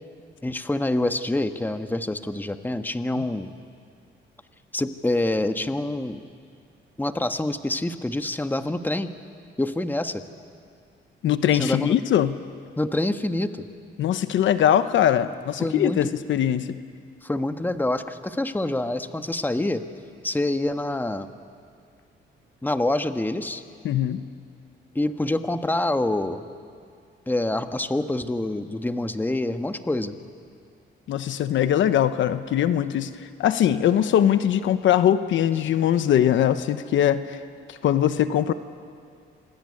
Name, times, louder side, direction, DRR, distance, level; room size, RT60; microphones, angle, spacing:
voice 1, 0.4-3.5 4.7-6.2 7.0-9.1 9.6-10.2 11.5-12.0 12.8-13.7 15.6-16.1 17.2-19.8 20.2-21.3 22.6-23.6 24.9-26.5 27.3-30.2, left 1 dB, 10° left, 8 dB, 1.4 m, -26 dB
voice 2, 11.2-12.4 14.0-16.8 23.8-24.2 31.1-37.4 37.7-38.5, left 10 dB, 75° left, 11 dB, 1.1 m, -21 dB
27.0 x 21.0 x 9.9 m, 2.2 s
cardioid pair, 90°, 20 cm